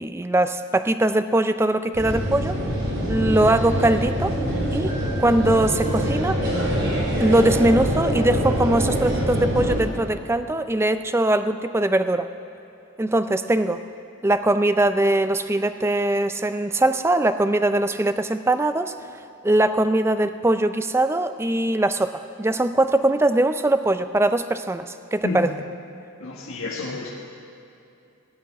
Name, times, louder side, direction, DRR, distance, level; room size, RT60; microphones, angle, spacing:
voice 1, 0.0-2.6 3.0-4.3 4.7-4.9 5.2-6.4 7.2-12.3 13.0-13.8 14.2-18.9 19.4-25.5, right 1 dB, 10° right, 10 dB, 0.4 m, -21 dB
sound 1, 1.9-9.8, equal, 70° right, 4.2 m, -24 dB
voice 2, 26.2-27.1, left 2 dB, 85° left, -4 dB, 1.5 m, -29 dB
17.5 x 6.0 x 9.6 m, 2.8 s
head